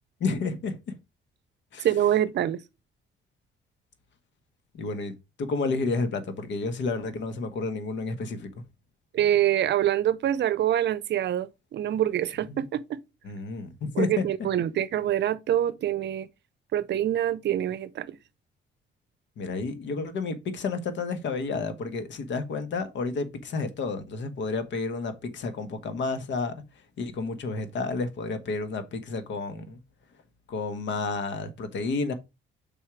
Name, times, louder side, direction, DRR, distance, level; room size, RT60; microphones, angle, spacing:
voice 1, 0.2-0.9 1.7-1.9 4.7-8.6 12.5-12.6 13.2-14.2 19.4-26.6 27.0-29.8 30.5-32.1, left 4 dB, 65° left, 1.2 m, -31 dB
voice 2, 1.8-2.6 9.1-13.0 14.0-16.3 16.7-18.2, right 11 dB, 60° right, 0.6 m, -25 dB
5.5 x 4.3 x 4.7 m
cardioid pair, 90°, 20 cm